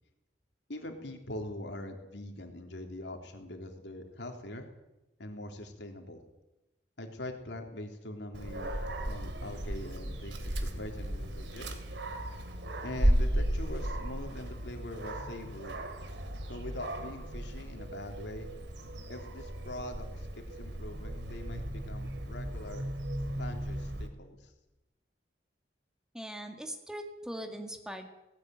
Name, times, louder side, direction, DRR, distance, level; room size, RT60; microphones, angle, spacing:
voice 1, 0.7-4.7 5.2-6.2 7.0-11.7 12.8-15.8 16.5-18.5 19.1-22.8 23.4-24.5, left 1 dB, 80° left, 4 dB, 3.4 m, -43 dB
Dog, 8.3-24.1, right 1 dB, 85° right, 2.9 m, -35 dB
voice 2, 26.1-28.1, equal, 5° right, 5 dB, 2.1 m, -41 dB
18.0 x 17.5 x 9.3 m, 0.97 s
head